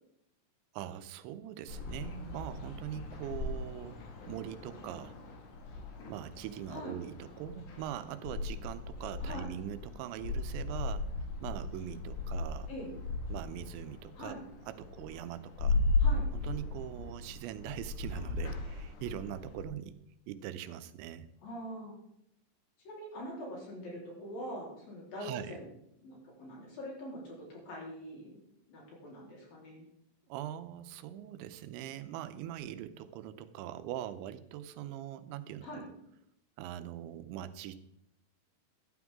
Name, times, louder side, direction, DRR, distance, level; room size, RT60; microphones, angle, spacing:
voice 1, 0.7-4.0 4.3-5.2 6.1-11.1 11.4-12.7 13.3-14.4 14.7-15.8 16.3-20.0 20.3-21.3 25.2-25.6 30.3-35.7 36.6-37.8, right 11 dB, 90° right, 12 dB, 3.1 m, -42 dB
sound 1, 1.7-19.6, left 3 dB, 70° left, 4.0 m, -37 dB
voice 2, 21.4-22.0 22.9-25.7 26.0-28.4 28.7-29.9 35.6-35.8, equal, 55° left, -3 dB, 5.4 m, -43 dB
13.5 x 12.0 x 3.6 m, 0.78 s
omnidirectional pair, 5.1 m